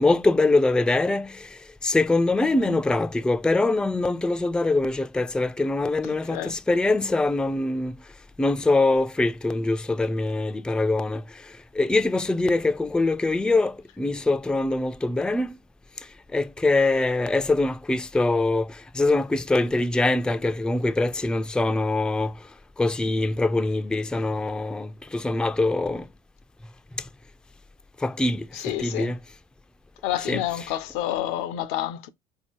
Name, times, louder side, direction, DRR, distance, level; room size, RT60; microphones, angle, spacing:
voice 1, 0.0-8.0 8.4-11.4 11.7-15.6 16.3-22.3 22.8-26.1 28.0-29.2 30.3-30.4, left 2 dB, 5° left, 0.4 m, -23 dB
voice 2, 6.0-6.5 28.5-29.1 30.0-32.1, left 12 dB, 70° left, 0.6 m, -29 dB
4.1 x 2.7 x 2.9 m
hypercardioid pair, 65°, 19 cm